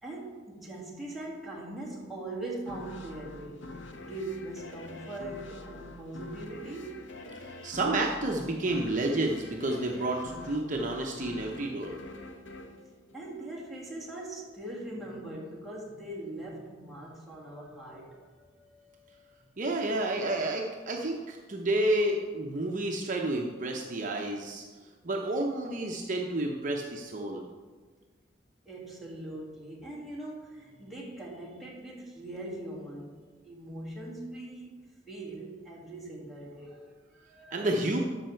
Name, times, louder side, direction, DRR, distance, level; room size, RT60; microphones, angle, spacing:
voice 1, 0.0-7.1 13.1-19.5 25.3-25.4 28.7-37.9, right 1 dB, ahead, -5 dB, 2.1 m, -41 dB
sound 1, 2.7-13.9, left 2 dB, 75° left, 0.9 m, -45 dB
voice 2, 7.6-11.9 19.6-24.6 25.0-27.4 37.5-38.0, right 1 dB, 45° right, 0 dB, 0.8 m, -30 dB
12.5 x 5.6 x 4.5 m, 1.4 s
head